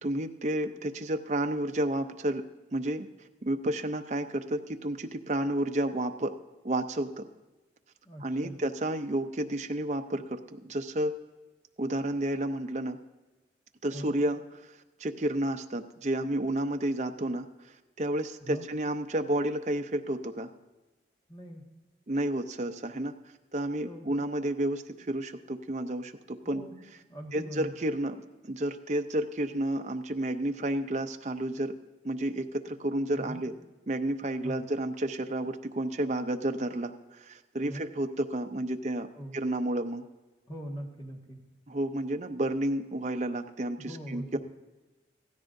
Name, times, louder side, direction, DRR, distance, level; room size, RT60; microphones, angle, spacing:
voice 1, 0.0-2.4 2.7-3.1 3.4-6.4 6.6-7.3 8.2-11.1 11.8-13.0 13.8-17.5 18.0-20.5 22.1-23.1 23.5-26.6 27.3-28.2 28.4-31.8 32.0-33.5 33.9-39.1 39.3-40.0 41.7-44.4, right 1 dB, 40° right, 6 dB, 0.6 m, -31 dB
voice 2, 8.0-8.6 13.9-14.1 18.4-18.7 21.3-21.6 23.8-24.1 26.4-26.7 27.1-27.7 33.1-33.4 34.4-34.6 37.7-37.8 39.1-39.4 40.5-41.4 43.8-44.4, equal, 25° left, 0 dB, 1.7 m, -41 dB
16.0 x 14.0 x 2.6 m, 1.2 s
head